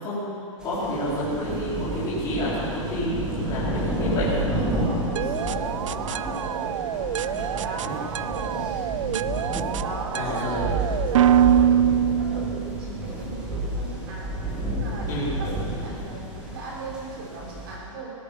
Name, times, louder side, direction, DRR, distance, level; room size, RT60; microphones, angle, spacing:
voice 1, 0.0-4.3 7.8-7.9 10.1-10.6 15.1-15.3, left 1 dB, 20° left, -11 dB, 4.5 m, -29 dB
sound 1, 0.6-17.7, right 1 dB, 5° right, 2.2 m, -30 dB
voice 2, 4.5-9.5 9.8-14.3 14.7-18.1, right 3 dB, 45° right, -4 dB, 4.9 m, -38 dB
sound 2, 5.2-12.9, right 10 dB, 70° right, 0.5 m, -24 dB
19.0 x 11.5 x 6.0 m, 2.4 s
hypercardioid pair, 175°, 17 cm